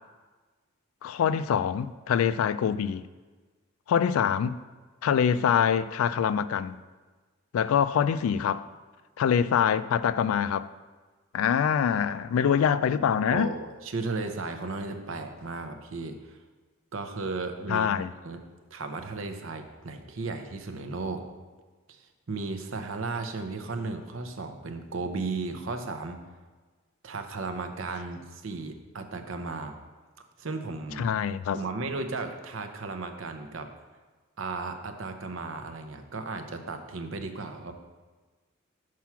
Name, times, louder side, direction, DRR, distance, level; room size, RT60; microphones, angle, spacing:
voice 1, 1.0-3.0 3.9-4.6 5.0-6.8 7.5-8.6 9.2-10.7 11.3-13.5 17.7-18.1 31.0-31.6, left 8 dB, 85° left, 0.3 m, -25 dB
voice 2, 13.1-16.4 16.9-18.4 18.7-21.2 21.9-22.0 22.3-26.2 27.0-29.7 30.4-31.1 31.5-33.7 34.4-37.7, right 3 dB, 70° right, 0.7 m, -35 dB
5.9 x 4.6 x 5.8 m
head